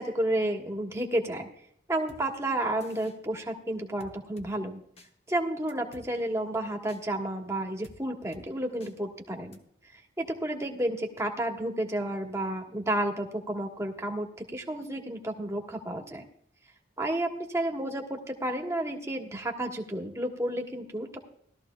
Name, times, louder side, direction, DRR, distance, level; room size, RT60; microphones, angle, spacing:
voice 1, 0.0-1.5 1.9-4.8 5.3-9.6 10.2-16.2 17.0-21.2, right 1 dB, 15° right, 2 dB, 1.4 m, -31 dB
sound 1, 2.1-2.2 2.8-3.2 4.0-4.5 5.0-5.1 5.7-6.1 6.9-7.0 7.8-8.0 8.3-8.5 8.8-8.9 9.5-9.6, left 2 dB, 35° left, 1.1 m, -52 dB
18.0 x 13.0 x 2.3 m, 0.69 s
head